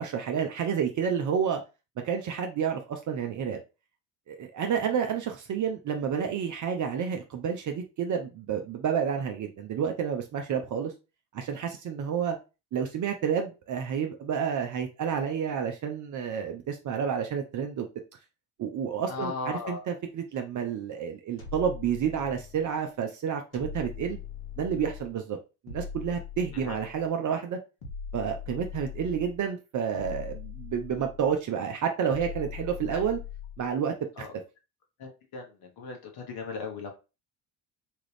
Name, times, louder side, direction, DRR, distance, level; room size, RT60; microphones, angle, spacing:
voice 1, 0.0-1.6 2.0-3.6 4.3-10.9 11.3-12.4 12.7-17.9 18.6-24.2 24.6-25.4 25.6-27.6 28.1-33.2 33.6-34.3, right 7 dB, 40° right, 5 dB, 0.6 m, -30 dB
voice 2, 19.1-19.8 26.5-26.7 32.9-33.0 34.2-34.3 35.0-35.5 35.8-36.9, left 4 dB, 55° left, 2 dB, 1.1 m, -37 dB
sound 1, 21.4-22.7 23.5-25.2 25.7-27.1 27.8-29.4 30.0-31.4 32.1-33.7, left 7 dB, 70° left, 1.4 m, -41 dB
3.0 x 2.4 x 3.3 m, 0.30 s
hypercardioid pair, 65°, 46 cm